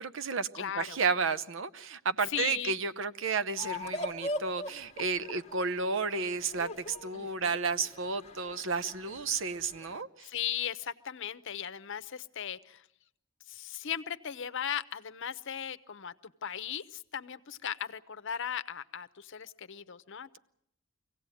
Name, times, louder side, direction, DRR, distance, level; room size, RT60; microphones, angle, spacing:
voice 1, 0.0-10.3, right 4 dB, 65° right, 13 dB, 0.8 m, -32 dB
voice 2, 0.6-1.0 2.3-2.8 7.1-7.6 10.2-12.9 13.5-16.1 16.4-20.4, left 9 dB, 65° left, 12 dB, 0.8 m, -37 dB
sound 1, 3.6-10.0, left 1 dB, 35° left, 1.3 m, -41 dB
24.5 x 17.0 x 9.1 m, 0.77 s
head